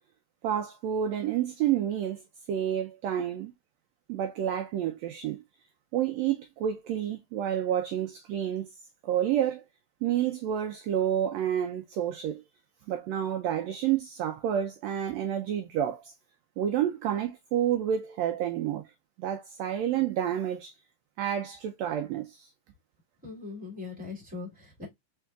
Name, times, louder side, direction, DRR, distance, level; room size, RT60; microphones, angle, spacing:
voice 1, 0.4-2.2 2.5-3.5 4.1-5.4 5.9-8.7 9.0-9.6 10.0-12.4 12.9-16.1 16.6-18.9 19.2-20.7 21.2-22.5, right 10 dB, 80° right, 1.5 m, -29 dB
voice 2, 23.2-24.9, left 4 dB, 5° right, 2.0 m, -40 dB
4.6 x 3.5 x 2.2 m
omnidirectional pair, 3.5 m